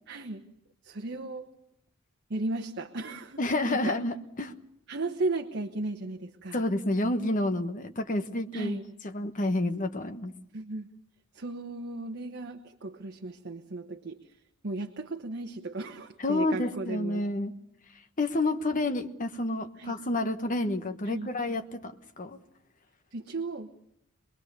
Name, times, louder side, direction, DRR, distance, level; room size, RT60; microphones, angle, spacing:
voice 1, 0.1-0.4 0.8-1.5 2.3-3.4 3.7-4.0 4.9-6.6 8.5-8.9 10.5-10.9 11.3-14.4 14.6-17.2 19.8-19.9 21.0-21.3 23.1-23.7, right 2 dB, 50° right, 3 dB, 1.1 m, -35 dB
voice 2, 3.4-4.5 6.5-8.8 9.0-10.3 16.2-17.5 18.2-22.4, left 2 dB, 40° left, 6 dB, 1.2 m, -29 dB
25.5 x 21.0 x 6.7 m, 0.77 s
head